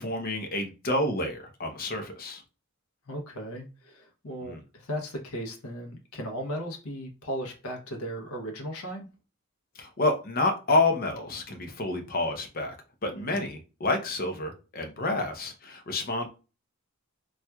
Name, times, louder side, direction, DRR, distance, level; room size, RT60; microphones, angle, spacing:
voice 1, 0.0-2.4 4.4-4.6 9.7-12.7 13.0-16.3, left 2 dB, 40° left, 0.6 m, -29 dB
voice 2, 3.1-9.1 13.1-13.4, equal, 80° left, 0.8 m, -36 dB
4.3 x 2.3 x 2.3 m
head